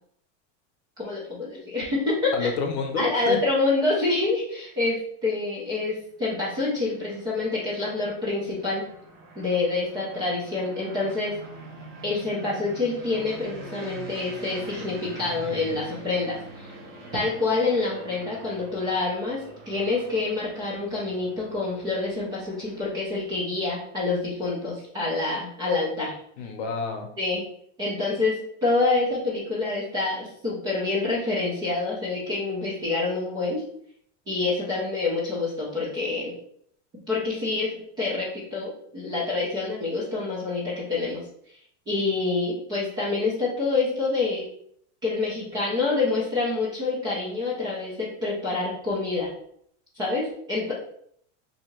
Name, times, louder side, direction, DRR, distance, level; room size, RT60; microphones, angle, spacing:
voice 1, 1.0-2.5 3.0-8.9 9.4-11.3 12.0-16.7 17.1-26.2 27.2-27.4 27.8-33.6 34.3-36.3 37.1-41.2 41.5-41.6 41.9-44.5 45.0-49.3 49.9-50.7, left 3 dB, 10° right, -6 dB, 0.4 m, -27 dB
voice 2, 2.3-3.4 26.4-27.1, left 4 dB, 60° left, 5 dB, 0.8 m, -29 dB
sound 1, 6.0-23.2, right 1 dB, 30° right, 0.8 m, -45 dB
2.8 x 2.7 x 4.4 m, 0.68 s
supercardioid pair, 175°, 36 cm